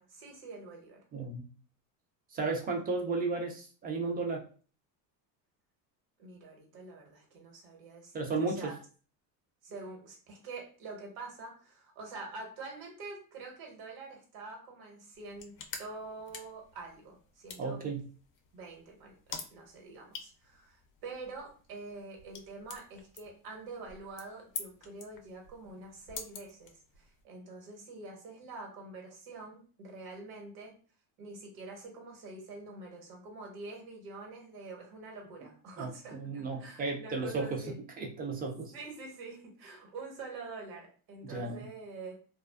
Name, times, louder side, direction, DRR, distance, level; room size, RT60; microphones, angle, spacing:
voice 1, 0.0-1.0 6.2-8.7 9.6-17.8 18.5-30.8 31.2-37.8 38.7-42.1, right 3 dB, 55° right, 1 dB, 1.1 m, -46 dB
voice 2, 1.1-1.5 2.3-4.4 8.1-8.7 17.6-18.0 35.8-37.6 38.0-38.7 41.2-41.7, right 3 dB, 25° right, 1 dB, 0.3 m, -34 dB
sound 1, 15.1-27.2, left 6 dB, 45° left, 0.5 m, -48 dB
2.4 x 2.3 x 2.3 m, 0.39 s
supercardioid pair, 120°, 45 cm